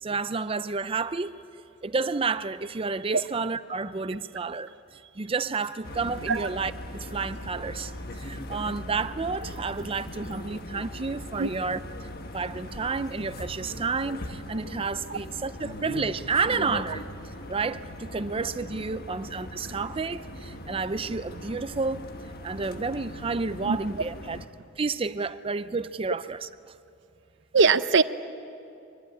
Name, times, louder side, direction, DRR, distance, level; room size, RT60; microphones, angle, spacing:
voice 1, 0.0-1.4 1.8-11.8 12.3-17.0 17.5-22.1 22.4-24.4 24.8-26.5, right 4 dB, 25° right, 0.5 m, -30 dB
sound 1, 5.8-24.5, left 1 dB, 50° left, 1.4 m, -40 dB
voice 2, 27.5-28.0, right 4 dB, 60° right, 0.7 m, -21 dB
24.0 x 21.0 x 9.8 m
head